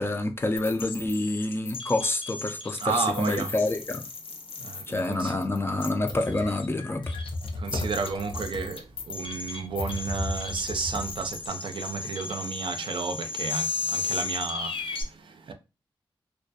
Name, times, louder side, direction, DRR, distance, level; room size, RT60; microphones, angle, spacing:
voice 1, 0.0-4.0 4.9-7.0, left 2 dB, 25° left, 0.4 m, -27 dB
sound 1, 0.6-15.0, left 4 dB, 85° left, 0.5 m, -35 dB
voice 2, 2.8-3.5 4.6-5.4 7.6-15.5, right 5 dB, 70° right, 0.4 m, -32 dB
Computer keyboard, 5.9-11.5, left 2 dB, 60° left, 0.8 m, -35 dB
2.3 x 2.2 x 2.6 m
wide cardioid pair, 75°, 9 cm